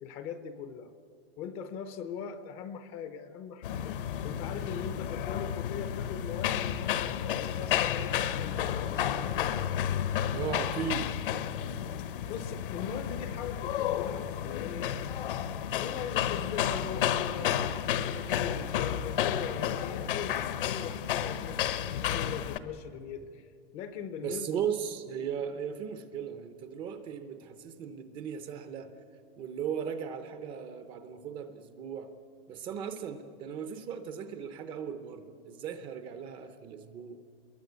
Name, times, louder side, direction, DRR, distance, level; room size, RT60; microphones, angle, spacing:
voice 1, 0.0-0.9 1.4-4.0 4.2-9.3 12.0-14.9 15.7-17.6 17.9-23.5 23.7-24.6, left 7 dB, 20° left, 11 dB, 0.6 m, -40 dB
sound 1, 3.6-22.6, left 10 dB, 60° left, 1.2 m, -32 dB
voice 2, 10.3-11.1 24.2-28.9 29.4-32.1 32.5-37.2, right 7 dB, 15° right, 9 dB, 0.6 m, -37 dB
25.5 x 22.0 x 8.1 m, 2.4 s
supercardioid pair, 175°, 30 cm